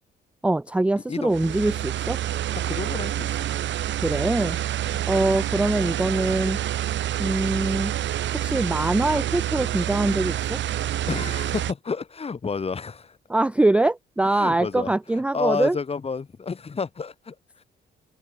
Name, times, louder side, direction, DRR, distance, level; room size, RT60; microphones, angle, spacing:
voice 1, 0.4-2.2 4.0-4.6 5.1-6.6 7.2-7.9 8.4-10.6 13.3-15.8, right 2 dB, 5° right, 0.4 m, -23 dB
sound 1, 1.3-11.7, right 12 dB, 70° right, 1.2 m, -27 dB
voice 2, 2.5-3.5 4.9-5.1 11.1-13.2 14.3-14.9 15.3-17.6, left 5 dB, 30° left, 1.4 m, -30 dB
cardioid pair, 90°, 20 cm